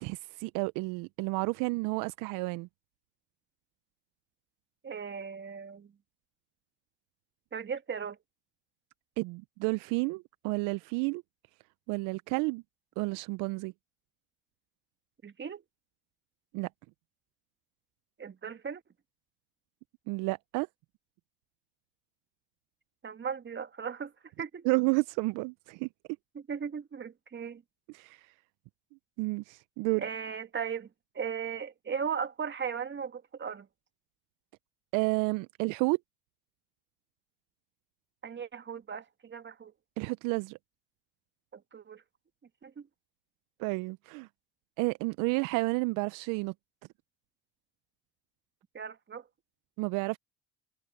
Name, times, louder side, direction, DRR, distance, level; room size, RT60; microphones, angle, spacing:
voice 1, 0.0-2.7 9.2-11.2 11.9-12.6 13.0-13.7 16.5-16.7 20.1-20.7 24.6-25.9 27.9-28.3 29.2-30.0 34.9-36.0 40.0-40.6 43.6-44.3 44.8-46.5 49.8-50.2, right 26 dB, 70° right, 0.9 m, -31 dB
voice 2, 4.8-5.9 7.5-8.2 15.2-15.6 18.2-18.8 23.0-24.6 26.3-27.6 30.0-30.9 31.1-33.7 38.2-39.7 41.5-42.0 42.6-42.9 48.7-49.3, right 7 dB, 35° right, 2.4 m, -37 dB
hypercardioid pair, 60°, 33 cm